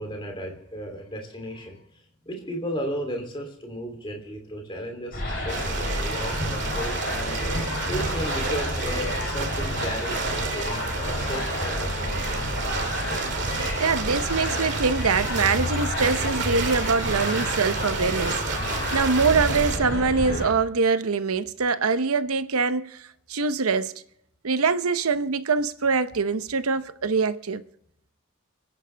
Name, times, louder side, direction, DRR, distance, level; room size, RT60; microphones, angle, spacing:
voice 1, 0.0-1.8 2.2-7.4 7.9-10.2 10.5-12.1, equal, 25° left, 3.0 m, -34 dB
sound 1, 5.1-20.5, left 1 dB, 45° left, 7.6 m, -30 dB
sound 2, 5.5-19.8, right 4 dB, 55° right, 2.1 m, -31 dB
voice 2, 13.8-23.0 23.3-23.9 24.4-27.6, right 4 dB, 85° right, 0.8 m, -24 dB
29.0 x 10.5 x 3.4 m
head